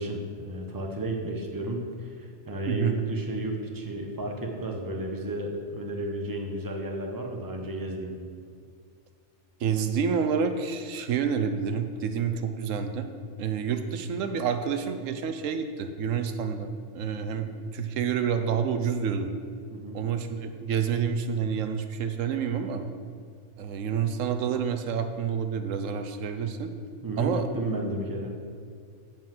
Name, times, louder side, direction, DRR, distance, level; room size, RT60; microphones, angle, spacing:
voice 1, 0.0-8.1 19.7-20.0 27.0-28.3, right 1 dB, 20° right, 1 dB, 1.0 m, -33 dB
voice 2, 2.7-3.0 9.6-13.1 13.4-19.3 19.9-22.8 23.6-26.7 27.2-27.5, right 7 dB, 90° right, 8 dB, 1.1 m, -28 dB
7.6 x 5.6 x 7.6 m, 2.3 s
omnidirectional pair, 1.3 m